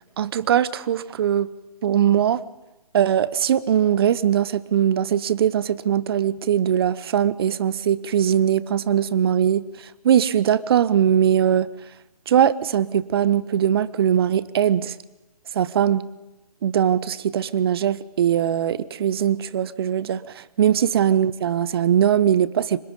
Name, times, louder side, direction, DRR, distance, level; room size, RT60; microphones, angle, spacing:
voice 1, 0.2-1.5 1.8-2.4 2.9-11.7 12.3-14.9 15.5-16.1 16.6-22.8, right 9 dB, 40° right, 0.8 m, -21 dB
24.5 x 21.0 x 5.4 m
figure-of-eight pair, 145°, 19 cm